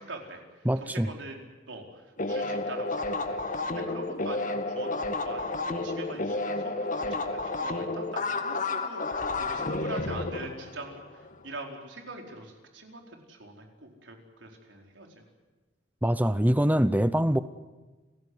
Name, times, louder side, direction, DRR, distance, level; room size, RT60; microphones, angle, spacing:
voice 1, 0.0-1.4 1.7-9.1 9.4-15.2, right 2 dB, 90° right, 2 dB, 4.6 m, -43 dB
voice 2, 0.6-1.1 16.0-17.4, equal, 10° right, 12 dB, 0.7 m, -24 dB
sound 1, 2.2-11.3, left 2 dB, 45° left, 1.7 m, -31 dB
30.0 x 16.0 x 9.7 m, 1.2 s
head